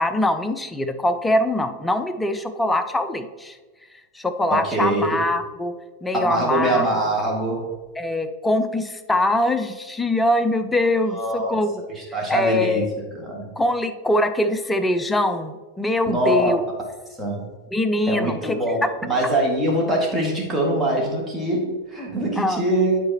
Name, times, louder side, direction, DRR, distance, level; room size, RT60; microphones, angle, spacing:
voice 1, 0.0-3.6 4.1-5.7 6.0-6.9 8.0-11.7 12.3-12.9 13.6-16.6 17.7-18.9 22.4-22.6, left 1 dB, 10° left, 9 dB, 0.5 m, -23 dB
voice 2, 4.5-5.3 6.1-7.7 11.1-11.6 11.9-13.5 16.1-16.5 17.2-17.4 18.1-23.0, right 1 dB, 10° right, -3 dB, 1.9 m, -23 dB
10.5 x 4.7 x 2.9 m, 1.3 s
figure-of-eight pair, 90°, 0 cm